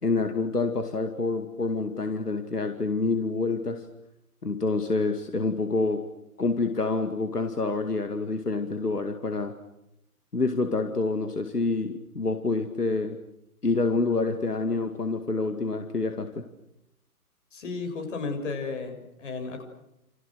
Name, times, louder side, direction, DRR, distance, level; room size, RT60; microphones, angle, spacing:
voice 1, 0.0-3.8 4.4-6.0 6.4-9.5 10.3-13.2 13.6-16.3, left 3 dB, 85° left, 7 dB, 2.4 m, -27 dB
voice 2, 17.5-19.6, left 4 dB, 50° left, 5 dB, 7.2 m, -33 dB
28.5 x 28.0 x 6.5 m, 0.82 s
figure-of-eight pair, 130°, 45 cm